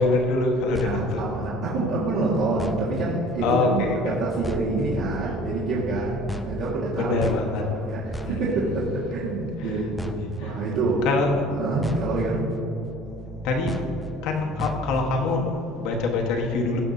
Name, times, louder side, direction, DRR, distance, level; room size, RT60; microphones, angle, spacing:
voice 1, 0.0-1.2 3.4-4.1 7.0-7.6 7.9-8.6 9.6-9.8 10.2-10.6 11.0-11.4 13.4-13.8 14.2-16.8, left 3 dB, 75° left, 1 dB, 1.4 m, -25 dB
sound 1, 0.8-15.5, equal, 5° left, 0.5 m, -37 dB
voice 2, 0.8-7.2 7.6-10.0 10.4-11.1 11.5-12.5, right 3 dB, 75° right, -8 dB, 1.8 m, -27 dB
16.5 x 5.9 x 2.8 m, 2.9 s
cardioid pair, 135°, 0 cm